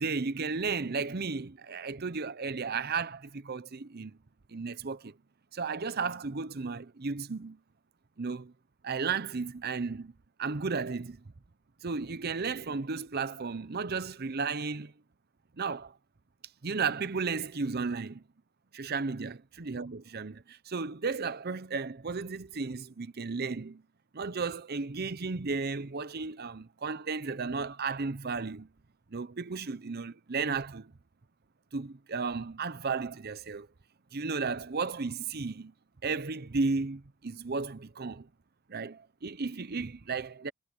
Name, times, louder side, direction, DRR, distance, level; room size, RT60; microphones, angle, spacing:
voice 1, 0.0-4.2 4.5-5.2 5.5-7.6 8.2-8.5 8.8-10.1 10.4-11.2 11.8-14.9 15.6-16.0 16.6-18.2 18.7-23.8 24.1-28.7 29.1-30.9 31.7-33.7 34.1-35.7 36.0-38.3 38.7-40.5, right 4 dB, 50° right, 0.7 m, -34 dB
head